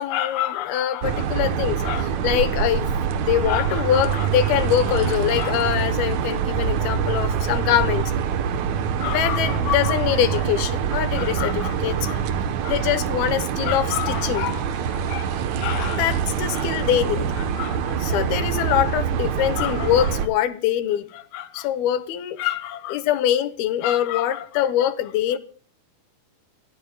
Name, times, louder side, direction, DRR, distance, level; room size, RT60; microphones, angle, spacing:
voice 1, 0.0-2.9 3.2-8.1 9.0-12.2 12.6-25.4, left 11 dB, 90° left, 2.9 m, -24 dB
sound 1, 1.0-20.3, right 7 dB, 65° right, 2.0 m, -25 dB
27.5 x 16.0 x 2.3 m
omnidirectional pair, 4.3 m